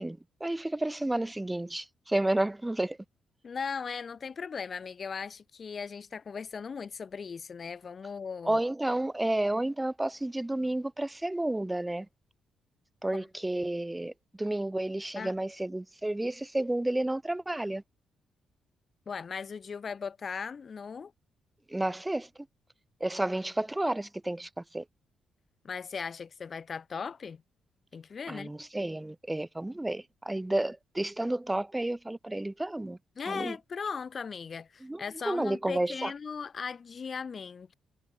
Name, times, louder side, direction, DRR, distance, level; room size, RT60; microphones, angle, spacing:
voice 1, 0.0-3.0 8.4-12.1 13.0-14.1 14.4-17.8 21.7-22.3 23.0-24.8 28.3-33.0 33.3-33.6 34.8-36.1, right 1 dB, 15° right, 0.9 m, -31 dB
voice 2, 3.4-8.6 15.1-15.3 19.0-21.1 25.6-27.4 27.9-28.5 33.1-37.7, left 6 dB, 50° left, 1.6 m, -38 dB
supercardioid pair, 55°, 0 cm